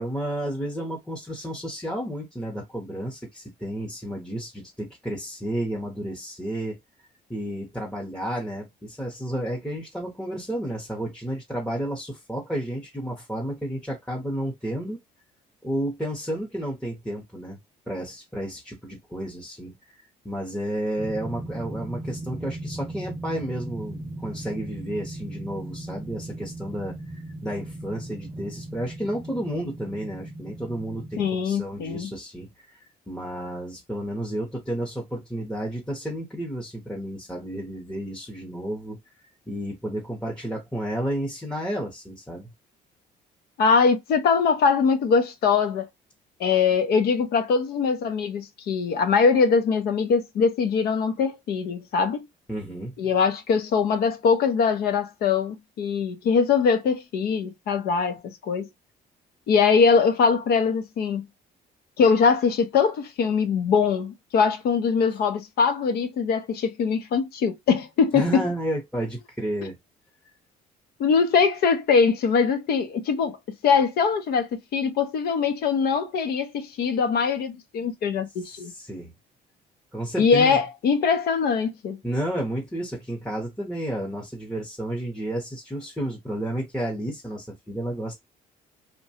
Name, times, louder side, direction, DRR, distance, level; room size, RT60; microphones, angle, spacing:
voice 1, 0.0-6.8 7.3-15.0 15.6-17.6 17.9-19.7 20.2-27.0 27.4-32.8 33.1-39.0 39.5-42.5 52.5-52.9 68.1-69.8 78.4-79.1 79.9-80.6 82.0-88.1, right 1 dB, 5° left, 0.8 m, -31 dB
sound 1, 21.0-31.3, right 1 dB, 10° right, 0.3 m, -37 dB
voice 2, 31.2-32.1 43.6-45.9 46.4-52.3 53.0-58.7 59.5-61.2 62.0-68.4 71.0-73.4 73.6-78.7 80.2-82.0, left 5 dB, 70° left, 0.7 m, -22 dB
2.9 x 2.2 x 2.7 m
cardioid pair, 110°, 17 cm